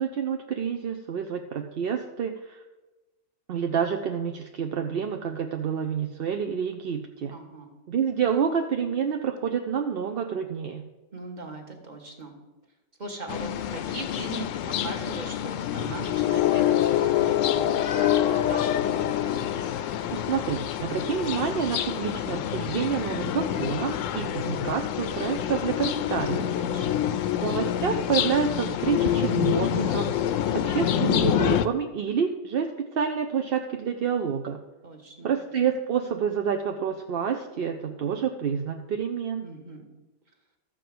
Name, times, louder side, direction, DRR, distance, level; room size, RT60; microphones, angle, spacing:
voice 1, 0.0-2.6 3.5-7.3 7.9-10.9 20.1-26.5 27.4-34.6 35.2-39.4, right 7 dB, 55° right, 5 dB, 0.7 m, -28 dB
voice 2, 7.3-7.7 11.1-12.4 13.0-19.1 26.6-27.2 34.8-35.3 39.4-39.9, right 2 dB, 35° right, 2 dB, 1.6 m, -39 dB
sound 1, 13.3-31.7, left 10 dB, 75° left, 0.9 m, -26 dB
13.0 x 5.0 x 7.7 m, 1.1 s
omnidirectional pair, 1.4 m